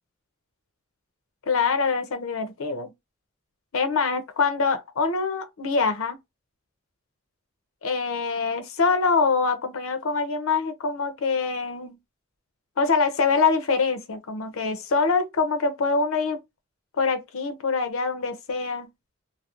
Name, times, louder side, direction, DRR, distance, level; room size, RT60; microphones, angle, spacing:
voice 1, 1.5-2.9 3.7-6.2 7.8-12.0 12.8-16.4 16.9-18.9, left 4 dB, 80° left, 0.5 m, -24 dB
2.4 x 2.0 x 2.7 m
head